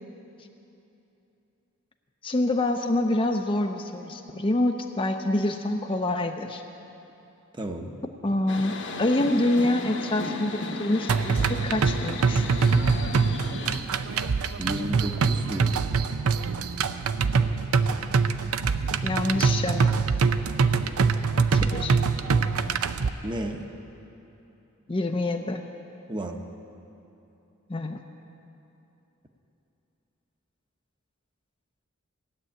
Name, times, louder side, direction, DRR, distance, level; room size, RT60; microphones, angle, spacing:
voice 1, 2.2-6.6 8.2-8.7 9.0-12.5 19.0-19.9 21.5-22.0 24.9-25.6 27.7-28.0, left 1 dB, 25° left, 5 dB, 0.5 m, -26 dB
voice 2, 7.6-8.0 14.6-15.8 23.2-23.6 26.1-26.4, right 1 dB, 20° right, 4 dB, 0.8 m, -32 dB
sound 1, 8.5-13.8, left 3 dB, 55° left, 1.2 m, -35 dB
sound 2, 11.1-23.1, right 5 dB, 90° right, 0.6 m, -24 dB
16.5 x 7.7 x 10.0 m, 3.0 s
head